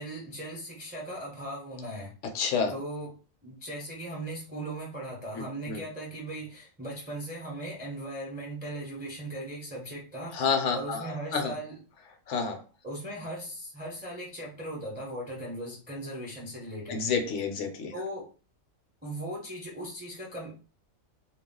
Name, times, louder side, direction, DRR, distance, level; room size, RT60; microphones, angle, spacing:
voice 1, 0.0-2.1 2.7-3.1 3.4-11.8 12.8-17.0 17.9-18.3 19.0-20.5, right 1 dB, 10° right, -3 dB, 0.6 m, -38 dB
voice 2, 2.3-2.7 5.3-5.8 10.3-11.5 12.3-12.6 16.9-17.9, left 5 dB, 70° left, 5 dB, 0.8 m, -29 dB
2.3 x 2.2 x 3.6 m, 0.37 s
omnidirectional pair, 1.4 m